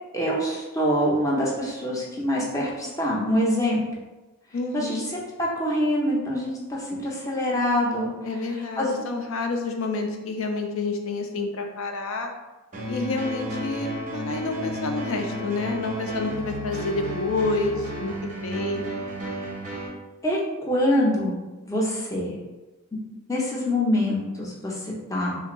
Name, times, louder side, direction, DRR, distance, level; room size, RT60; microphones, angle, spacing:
voice 1, 0.1-3.8 4.7-8.1 8.8-9.0 20.2-20.4 20.7-21.4 21.6-22.3 23.3-25.4, equal, 15° left, -4 dB, 0.5 m, -25 dB
voice 2, 4.5-5.0 8.2-12.3 12.9-18.1 18.4-18.8, left 3 dB, 70° left, 4 dB, 0.5 m, -28 dB
sound 1, 12.7-19.9, equal, 35° right, 0.6 m, -33 dB
3.4 x 2.5 x 3.0 m, 1.1 s
head